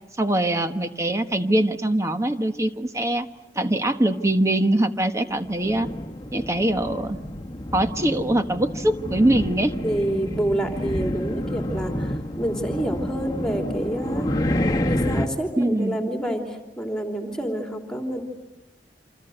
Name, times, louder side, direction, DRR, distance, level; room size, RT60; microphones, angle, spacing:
voice 1, 0.2-3.3 3.5-5.9 6.3-7.2 7.7-9.7 15.6-16.0, right 1 dB, 15° right, 8 dB, 1.3 m, -22 dB
sound 1, 5.4-15.3, left 1 dB, 25° left, 1.5 m, -29 dB
voice 2, 9.8-14.4 14.8-18.2, right 1 dB, 5° left, 3 dB, 3.3 m, -28 dB
28.0 x 26.5 x 8.0 m, 1.1 s
head